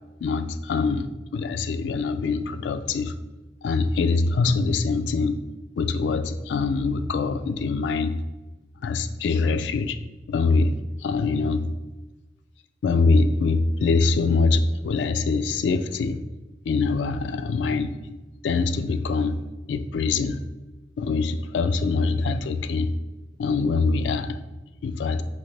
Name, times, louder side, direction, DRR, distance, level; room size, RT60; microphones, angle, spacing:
voice 1, 0.2-3.1 3.6-5.4 5.8-8.1 8.8-10.0 10.3-11.7 12.8-16.2 16.7-18.2 18.4-19.4 19.7-20.4 21.0-22.9 23.4-24.4 24.8-25.2, left 4 dB, 75° left, 11 dB, 0.3 m, -24 dB
6.0 x 2.7 x 3.2 m, 1.1 s
head